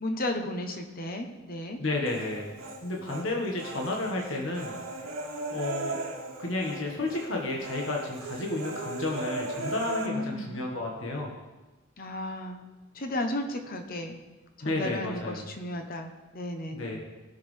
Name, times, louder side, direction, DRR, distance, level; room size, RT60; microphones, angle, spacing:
voice 1, 0.0-1.8 10.0-10.6 12.0-12.6 12.9-14.2 14.6-17.0, left 1 dB, 45° left, 5 dB, 1.0 m, -34 dB
voice 2, 1.8-2.5 2.8-4.7 5.5-6.0 6.4-11.3 14.6-15.5 16.7-17.0, left 2 dB, 65° left, -1 dB, 1.6 m, -32 dB
Human voice, 2.1-3.3 3.6-6.8 7.1-7.3 7.6-10.1, right 2 dB, 85° right, 2.4 m, -37 dB
18.0 x 6.5 x 3.4 m, 1.2 s
head